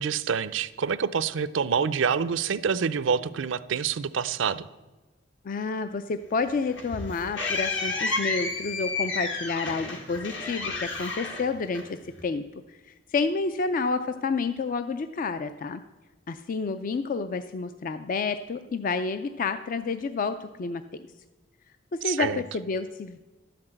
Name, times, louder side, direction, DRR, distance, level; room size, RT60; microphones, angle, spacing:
voice 1, 0.0-4.7 22.0-22.4, right 6 dB, 75° right, 16 dB, 0.5 m, -27 dB
voice 2, 5.4-15.8 16.3-21.0 21.9-23.2, left 4 dB, 45° left, 10 dB, 0.4 m, -30 dB
sound 1, 6.4-12.2, left 3 dB, 70° left, 1.8 m, -31 dB
12.0 x 5.9 x 7.7 m, 1.2 s
head